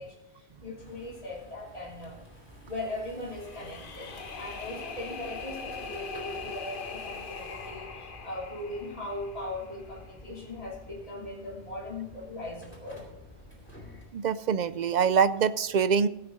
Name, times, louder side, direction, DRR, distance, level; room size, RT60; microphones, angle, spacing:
voice 1, 0.0-2.2 2.7-13.1, left 2 dB, 30° left, -5 dB, 3.2 m, -39 dB
sound 1, 0.8-14.1, equal, 10° left, 3.8 m, -50 dB
sound 2, 3.3-10.4, left 5 dB, 50° left, 1.1 m, -42 dB
voice 2, 14.1-16.1, right 6 dB, 55° right, 14 dB, 0.5 m, -24 dB
15.5 x 8.5 x 3.9 m, 1.0 s
omnidirectional pair, 1.2 m